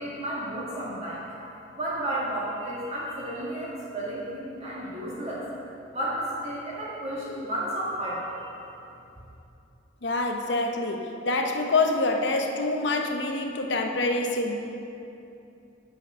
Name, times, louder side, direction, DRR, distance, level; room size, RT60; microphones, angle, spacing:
voice 1, 0.0-5.4 5.9-8.7, right 1 dB, 35° right, -7 dB, 1.7 m, -32 dB
voice 2, 10.0-14.6, left 2 dB, 65° left, 3 dB, 0.9 m, -26 dB
7.7 x 7.6 x 5.5 m, 2.8 s
head